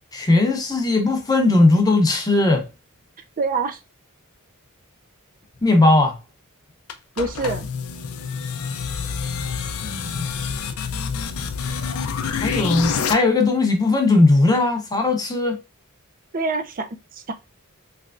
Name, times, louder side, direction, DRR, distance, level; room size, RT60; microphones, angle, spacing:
voice 1, 0.1-2.7 5.6-6.2 9.8-10.3 12.4-15.6, left 2 dB, 15° left, 0.7 m, -18 dB
voice 2, 3.4-3.8 7.2-7.7 16.3-17.3, right 3 dB, 40° right, 0.4 m, -25 dB
sound 1, 6.9-13.1, left 6 dB, 70° left, 0.4 m, -27 dB
3.3 x 3.1 x 2.4 m
head